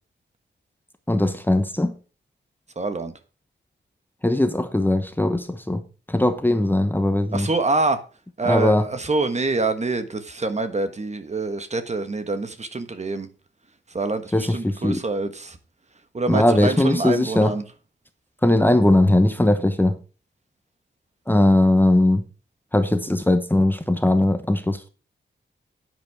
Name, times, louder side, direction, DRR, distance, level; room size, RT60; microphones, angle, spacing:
voice 1, 1.1-1.9 4.2-5.8 6.1-7.5 8.5-8.9 14.3-15.0 16.3-17.5 18.4-20.0 21.3-22.2 22.7-24.9, left 1 dB, 10° left, 1.0 m, -19 dB
voice 2, 2.7-3.1 7.3-8.0 8.4-13.3 13.9-15.6 16.1-17.6, right 3 dB, 35° right, 1.4 m, -25 dB
10.5 x 9.4 x 3.5 m
wide cardioid pair, 120°, 20 cm